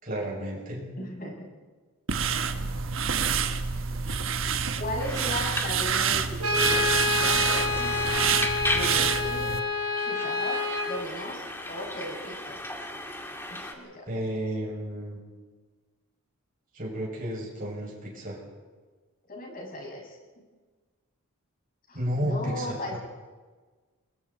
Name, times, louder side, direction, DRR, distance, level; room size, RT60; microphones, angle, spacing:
voice 1, 0.0-0.8 14.1-15.2 16.7-18.4 21.9-23.0, equal, 40° right, -2 dB, 6.9 m, -32 dB
voice 2, 1.0-1.5 4.8-8.3 8.7-9.5 10.0-10.6 10.9-12.6 13.5-14.2 19.3-20.2 21.9-23.0, left 1 dB, 40° left, -1 dB, 6.7 m, -37 dB
sound 1, 2.1-9.6, right 7 dB, 60° right, 1.3 m, -27 dB
sound 2, 5.0-13.7, left 1 dB, 10° left, 2.0 m, -36 dB
Brass instrument, 6.4-11.0, left 3 dB, 90° right, 3.4 m, -28 dB
28.5 x 21.0 x 4.3 m, 1.4 s
head